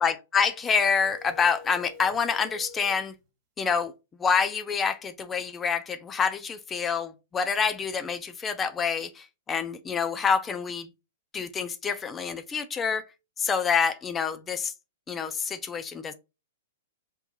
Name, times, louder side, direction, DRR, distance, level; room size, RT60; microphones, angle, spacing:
voice 1, 0.0-3.1 3.6-3.9 4.2-10.9 11.3-13.1 13.4-14.7 15.1-16.1, left 6 dB, 20° left, 0.5 m, -27 dB
sound 1, 0.9-3.0, left 5 dB, 40° right, 1.5 m, -46 dB
3.6 x 2.9 x 2.6 m
hypercardioid pair, 120°, 0 cm